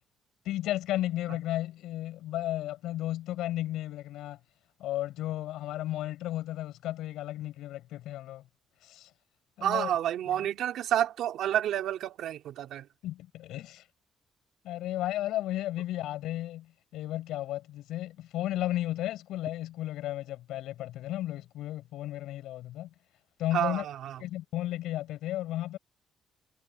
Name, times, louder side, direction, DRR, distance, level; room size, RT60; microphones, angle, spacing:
voice 1, 0.4-4.4 4.8-8.4 8.8-9.1 9.6-9.9 10.3-10.5 13.0-13.8 14.6-22.9 23.4-23.8 24.2-25.8, left 14 dB, 90° left, 7.7 m, -34 dB
voice 2, 9.6-12.9 23.5-24.2, right 11 dB, 80° right, 2.7 m, -29 dB
cardioid pair, 90°, 0 cm